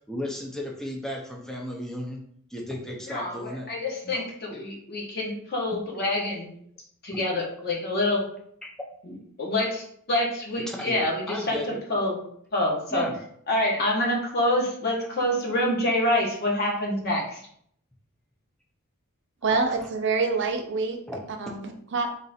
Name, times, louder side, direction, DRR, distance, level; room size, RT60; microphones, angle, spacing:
voice 1, 0.1-2.2 2.5-3.7 4.0-4.3 10.6-11.8 12.9-13.2 19.5-19.6 21.1-21.5, left 1 dB, 5° left, -1 dB, 0.6 m, -34 dB
voice 2, 3.1-6.5 7.0-8.3 9.0-11.6 11.9-12.2 12.5-13.1 13.5-17.4, left 1 dB, 50° left, -2 dB, 1.2 m, -26 dB
voice 3, 19.4-21.0 21.4-22.1, right 4 dB, 60° right, 4 dB, 0.6 m, -26 dB
3.9 x 2.5 x 4.2 m, 0.66 s
head